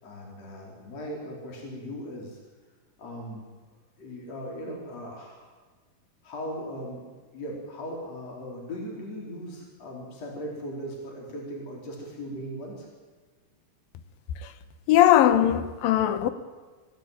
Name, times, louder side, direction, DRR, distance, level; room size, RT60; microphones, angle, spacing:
voice 1, 0.0-2.4 3.0-3.4 4.0-5.5 6.2-12.9, equal, 45° left, 5.6 m, -38 dB
voice 2, 14.9-16.3, left 12 dB, 80° left, 2.9 m, -19 dB
26.0 x 17.5 x 9.1 m
omnidirectional pair, 4.1 m